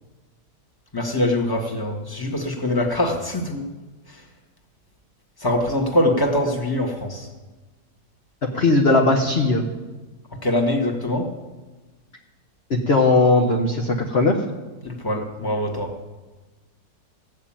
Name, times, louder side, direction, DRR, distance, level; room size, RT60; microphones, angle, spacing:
voice 1, 0.9-3.7 4.1-4.2 5.4-7.3 10.4-11.3 14.8-16.0, left 1 dB, 15° left, 1 dB, 1.7 m, -23 dB
voice 2, 8.5-9.6 12.7-14.3, left 2 dB, 40° left, 0 dB, 1.2 m, -18 dB
16.5 x 6.7 x 8.8 m, 1.2 s
omnidirectional pair, 1.9 m